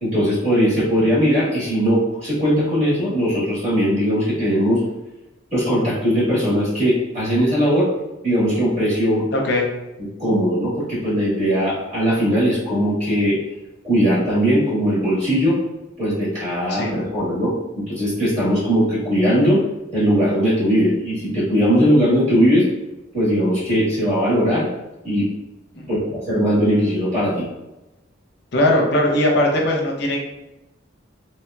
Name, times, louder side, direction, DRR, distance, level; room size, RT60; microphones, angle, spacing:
voice 1, 0.0-4.8 5.5-7.9 8.2-9.2 10.0-13.4 13.8-15.6 16.0-19.6 19.9-22.7 23.1-24.7 25.0-25.3 25.9-27.4, equal, 35° right, -9 dB, 1.4 m, -19 dB
voice 2, 9.3-9.7 16.7-16.9 25.8-26.0 28.5-30.2, left 1 dB, 60° left, 0 dB, 0.6 m, -19 dB
2.9 x 2.9 x 2.3 m, 0.99 s
head